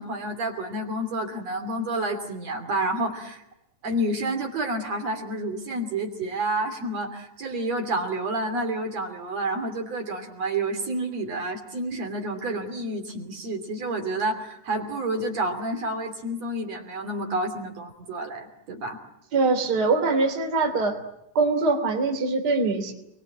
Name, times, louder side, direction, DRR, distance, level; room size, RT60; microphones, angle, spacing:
voice 1, 0.0-3.4 3.8-19.0, right 1 dB, 50° right, 4 dB, 4.0 m, -29 dB
voice 2, 19.3-21.0 21.3-22.9, right 3 dB, 30° right, 4 dB, 3.3 m, -23 dB
29.0 x 21.5 x 8.8 m, 0.83 s
omnidirectional pair, 3.9 m